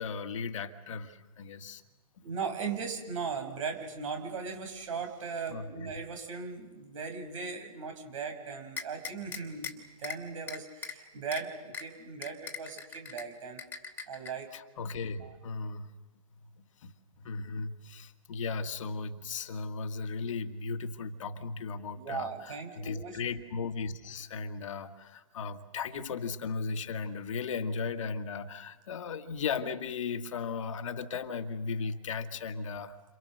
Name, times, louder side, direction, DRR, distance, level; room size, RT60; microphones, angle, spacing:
voice 1, 0.0-1.8 5.5-5.9 14.5-15.9 16.6-33.0, left 5 dB, 55° left, 7 dB, 1.9 m, -36 dB
voice 2, 2.2-14.5 15.2-15.4 22.0-23.2, right 5 dB, 60° right, 5 dB, 6.4 m, -38 dB
sound 1, 8.8-9.7 10.0-10.2 10.5-10.9 11.3-11.4 11.7-11.8 12.2-13.2 13.6-14.3, left 6 dB, 10° left, 2.8 m, -39 dB
29.5 x 28.0 x 6.7 m, 1.2 s
figure-of-eight pair, 125°, 19 cm